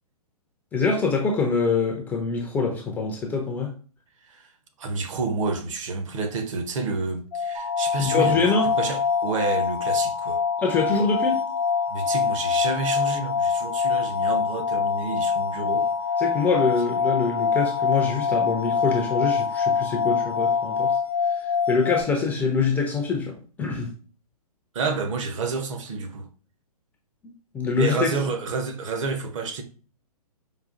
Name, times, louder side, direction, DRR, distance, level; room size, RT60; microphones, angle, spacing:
voice 1, 0.7-3.7 8.0-8.7 10.6-11.4 16.2-20.9 21.7-23.9 27.5-28.2, left 4 dB, 10° left, 0.3 m, -24 dB
voice 2, 4.8-8.5 8.8-10.4 11.9-15.9 24.7-26.3 27.8-29.6, right 4 dB, 55° right, 0.7 m, -29 dB
sound 1, 7.3-22.0, left 6 dB, 70° left, 0.5 m, -25 dB
sound 2, 7.5-21.0, left 3 dB, 75° right, 1.4 m, -34 dB
5.0 x 2.4 x 2.4 m
figure-of-eight pair, 120°, 20 cm